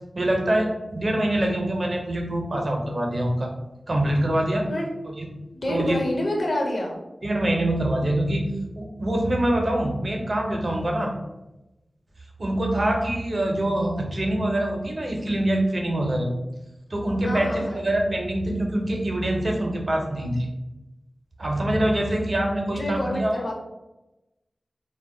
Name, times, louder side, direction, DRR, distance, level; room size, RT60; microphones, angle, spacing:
voice 1, 0.1-3.5 3.9-4.7 5.2-5.3 5.7-6.0 7.2-11.1 12.4-16.3 16.9-20.5 21.4-23.5, right 1 dB, 55° right, 1 dB, 0.6 m, -24 dB
voice 2, 5.5-6.9 17.2-17.8 22.7-23.5, left 1 dB, 60° left, -1 dB, 0.7 m, -27 dB
2.2 x 2.1 x 3.6 m, 0.98 s
cardioid pair, 45°, 0 cm